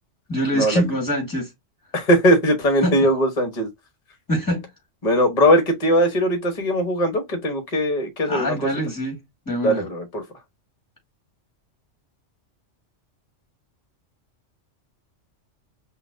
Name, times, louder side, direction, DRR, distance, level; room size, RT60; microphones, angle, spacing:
voice 1, 0.3-1.5 2.8-3.1 4.3-4.7 8.3-9.2 9.5-9.9, equal, 15° left, 1.9 m, -24 dB
voice 2, 1.9-3.7 5.0-8.5 9.6-10.2, equal, 35° left, 1.1 m, -20 dB
5.7 x 2.4 x 2.6 m
omnidirectional pair, 1.2 m